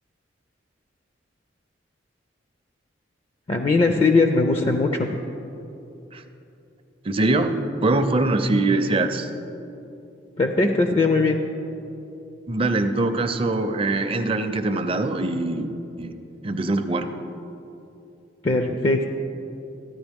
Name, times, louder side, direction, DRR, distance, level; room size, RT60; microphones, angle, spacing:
voice 1, 3.5-5.1 10.4-11.4 18.4-19.0, left 3 dB, 30° left, 5 dB, 0.4 m, -20 dB
voice 2, 7.0-7.5 7.8-9.3 12.5-15.7 16.0-16.2 16.4-17.1, right 2 dB, 30° right, 8 dB, 0.5 m, -23 dB
14.0 x 9.9 x 3.5 m, 2.8 s
head